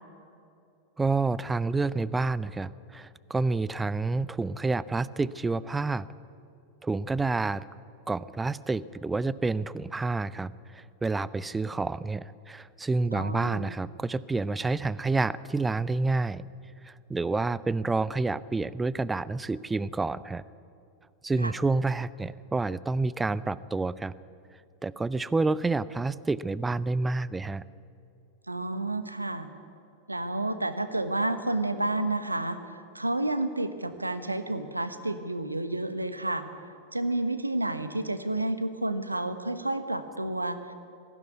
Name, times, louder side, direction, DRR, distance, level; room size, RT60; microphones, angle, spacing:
voice 1, 1.0-6.1 6.8-7.6 8.1-16.5 16.8-20.4 21.2-24.1 24.8-27.6, right 3 dB, 10° right, 19 dB, 0.5 m, -29 dB
voice 2, 13.1-13.8 21.4-21.5 28.5-29.5 30.1-36.5 36.9-40.7, right 2 dB, 85° right, 11 dB, 1.3 m, -30 dB
20.0 x 16.0 x 9.4 m, 2.6 s
figure-of-eight pair, 90°, 0 cm